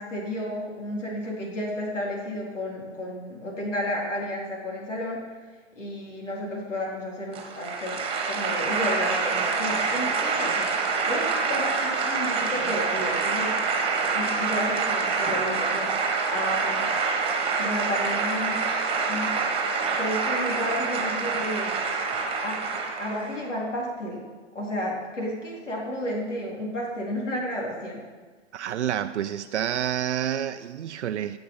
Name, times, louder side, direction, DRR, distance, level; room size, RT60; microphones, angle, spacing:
voice 1, 0.0-5.4 5.8-8.0 8.3-13.5 14.0-16.8 17.6-18.6 19.1-19.4 20.0-21.8 22.4-24.2 24.5-28.0, left 1 dB, 90° left, -1 dB, 4.1 m, -32 dB
sound 1, 7.3-23.4, right 4 dB, 15° right, 1.6 m, -26 dB
voice 2, 28.5-31.4, right 10 dB, 70° right, 9 dB, 0.6 m, -28 dB
16.0 x 6.9 x 5.6 m, 1.4 s
hypercardioid pair, 135°, 36 cm